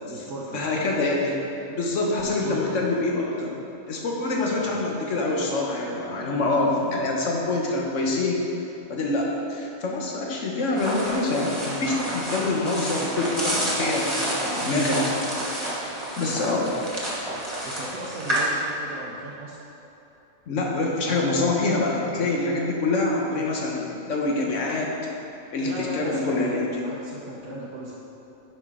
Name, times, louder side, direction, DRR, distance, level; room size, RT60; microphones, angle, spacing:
voice 1, 0.0-0.7 2.2-2.8 4.5-4.8 16.3-16.5 17.6-19.6 25.6-27.9, right 2 dB, 80° right, -4 dB, 1.2 m, -36 dB
voice 2, 0.5-1.4 1.7-3.6 3.9-8.4 8.9-15.0 16.2-16.7 20.5-24.9 25.5-26.7, left 2 dB, 60° left, -1 dB, 1.4 m, -25 dB
sound 1, 10.8-18.4, right 1 dB, 20° right, 1.6 m, -29 dB
10.5 x 5.5 x 3.7 m, 3.0 s
omnidirectional pair, 1.5 m